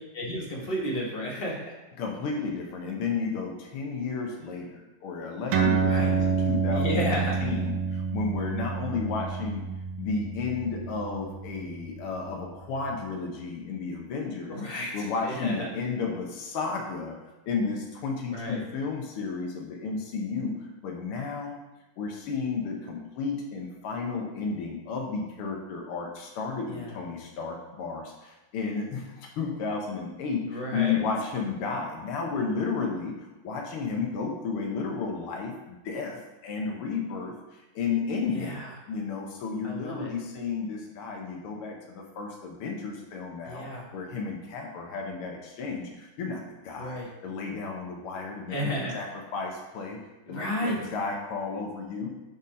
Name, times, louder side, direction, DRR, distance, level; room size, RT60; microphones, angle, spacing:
voice 1, 0.1-1.8 5.8-6.1 6.7-7.4 14.5-15.7 18.3-18.6 26.7-27.0 30.4-31.0 38.3-38.7 39.6-40.1 43.4-43.9 46.8-47.1 48.5-49.0 50.3-50.9, equal, 30° left, -2 dB, 1.2 m, -32 dB
voice 2, 2.0-9.6 10.0-14.6 14.9-17.2 17.5-20.6 20.8-21.6 22.0-33.2 33.4-38.6 38.9-43.7 43.9-48.6 48.9-49.1 49.3-50.0 50.3-52.1, left 4 dB, 85° left, 0 dB, 1.8 m, -32 dB
sound 1, 5.5-12.4, right 5 dB, 80° right, 1.6 m, -28 dB
6.0 x 4.1 x 5.2 m, 1.1 s
omnidirectional pair, 2.4 m